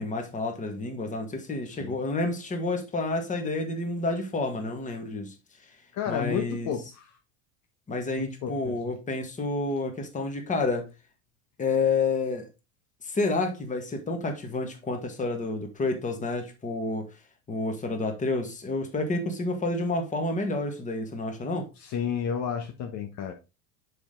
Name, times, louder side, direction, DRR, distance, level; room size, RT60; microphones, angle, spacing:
voice 1, 0.0-5.3 6.1-6.7 7.9-10.9 11.6-12.5 13.0-17.1 17.5-21.7, left 3 dB, 20° left, 1.8 m, -29 dB
voice 2, 1.7-2.0 5.9-7.2 8.2-8.8 21.8-23.3, left 7 dB, 50° left, 1.2 m, -32 dB
6.8 x 5.1 x 3.8 m
supercardioid pair, 125°, 36 cm